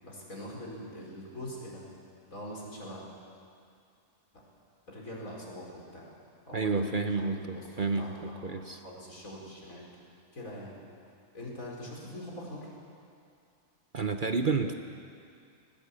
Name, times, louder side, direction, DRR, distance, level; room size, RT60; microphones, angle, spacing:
voice 1, 0.0-1.9 2.3-3.0 4.3-4.5 4.9-6.1 6.5-7.1 7.4-9.9 10.3-10.8 11.3-12.7, left 1 dB, 75° left, -3 dB, 5.2 m, -43 dB
voice 2, 6.5-8.8 13.9-14.7, right 4 dB, 45° right, 6 dB, 0.9 m, -30 dB
19.5 x 18.0 x 8.5 m, 2.4 s
omnidirectional pair, 1.4 m